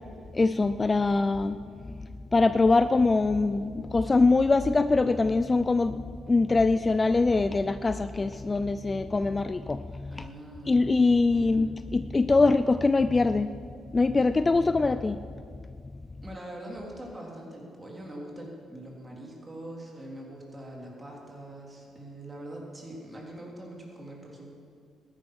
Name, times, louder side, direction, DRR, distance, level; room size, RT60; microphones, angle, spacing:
voice 1, 0.3-1.6 1.8-2.0 2.3-10.3 10.7-13.5 13.9-15.2, left 3 dB, 25° left, 12 dB, 0.3 m, -23 dB
voice 2, 10.1-10.8 11.4-11.6 16.2-24.5, right 1 dB, 20° right, -1 dB, 3.3 m, -43 dB
13.5 x 10.5 x 6.2 m, 2.2 s
cardioid pair, 90°, 0 cm